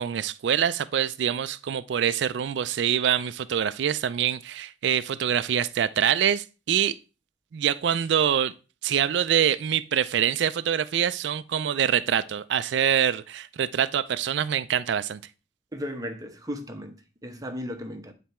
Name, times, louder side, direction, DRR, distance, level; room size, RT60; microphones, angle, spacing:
voice 1, 0.0-6.9 7.5-8.5 8.8-15.2, right 9 dB, 65° right, 0.4 m, -25 dB
voice 2, 15.7-18.1, equal, 20° right, 0.9 m, -36 dB
9.3 x 3.4 x 4.3 m
head